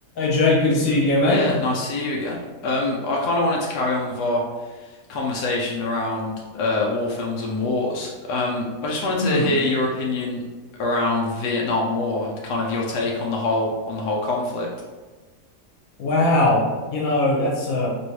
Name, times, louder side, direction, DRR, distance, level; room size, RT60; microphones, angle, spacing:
voice 1, 0.2-1.6 9.1-9.5 16.0-17.9, left 2 dB, 60° left, -3 dB, 1.4 m, -20 dB
voice 2, 1.3-4.4 5.1-10.4 10.8-14.7, left 2 dB, 85° left, -2 dB, 1.2 m, -24 dB
3.1 x 3.0 x 4.5 m, 1.3 s
omnidirectional pair, 1.7 m